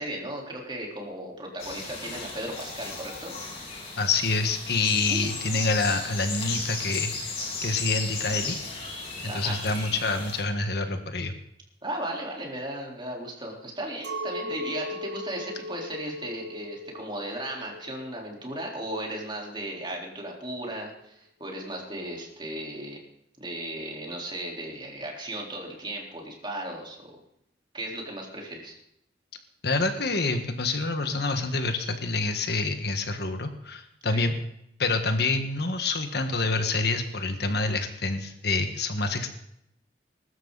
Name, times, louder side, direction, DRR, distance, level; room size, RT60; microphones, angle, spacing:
voice 1, 0.0-3.3 5.1-5.4 9.3-9.6 11.8-23.0 23.4-27.1 27.7-28.7 34.1-34.2, right 1 dB, 25° right, -1 dB, 4.0 m, -36 dB
sound 1, 1.6-10.4, left 3 dB, 35° left, 4.1 m, -35 dB
voice 2, 4.0-8.6 9.2-11.3 29.6-34.3 34.8-39.4, left 3 dB, 65° left, 6 dB, 1.6 m, -27 dB
Chink clink, 14.0-19.5, left 1 dB, 80° right, 2.3 m, -38 dB
22.0 x 13.0 x 4.1 m, 0.77 s
head